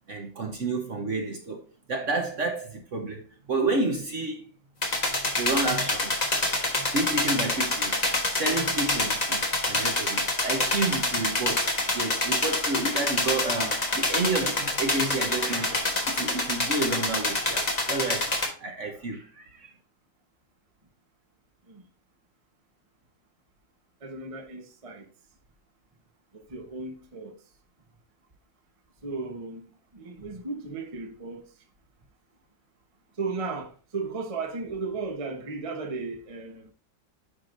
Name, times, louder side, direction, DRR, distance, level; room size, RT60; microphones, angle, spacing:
voice 1, 0.1-1.6 1.9-4.4 5.1-6.1 6.8-7.9 8.3-19.7, right 2 dB, 50° right, 1.2 m, -30 dB
sound 1, 4.8-18.5, left 2 dB, 25° left, 1.2 m, -27 dB
voice 2, 24.0-25.1 26.3-27.3 29.0-29.7 29.9-31.5 33.2-36.7, right 4 dB, 25° right, 0.9 m, -35 dB
9.7 x 4.8 x 2.6 m
omnidirectional pair, 2.0 m